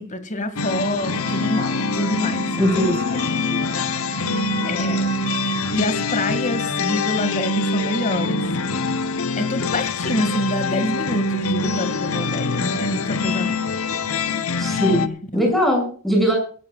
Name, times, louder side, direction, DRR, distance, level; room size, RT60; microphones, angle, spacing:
voice 1, 0.0-3.8 4.3-4.4 4.6-5.3 5.7-8.4 9.4-13.6 14.9-15.1 15.3-15.5, left 1 dB, 35° left, 9 dB, 2.1 m, -27 dB
sound 1, 0.6-15.1, left 3 dB, 80° left, 1.0 m, -24 dB
sound 2, 1.0-5.8, right 6 dB, 70° right, 3.8 m, -38 dB
voice 2, 2.6-2.9 14.6-16.4, equal, ahead, 1 dB, 6.8 m, -20 dB
23.5 x 13.0 x 2.4 m, 0.43 s
head